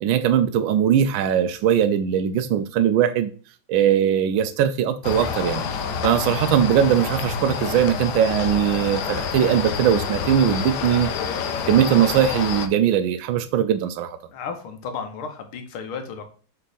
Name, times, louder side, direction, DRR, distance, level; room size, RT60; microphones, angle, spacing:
voice 1, 0.0-3.3 3.7-5.6 6.0-11.1 11.7-14.2, right 9 dB, 75° right, 1.3 m, -20 dB
sound 1, 5.0-12.7, left 6 dB, 65° left, 1.1 m, -28 dB
voice 2, 14.3-16.2, left 5 dB, 90° left, 1.9 m, -33 dB
8.0 x 3.3 x 4.1 m
omnidirectional pair, 2.3 m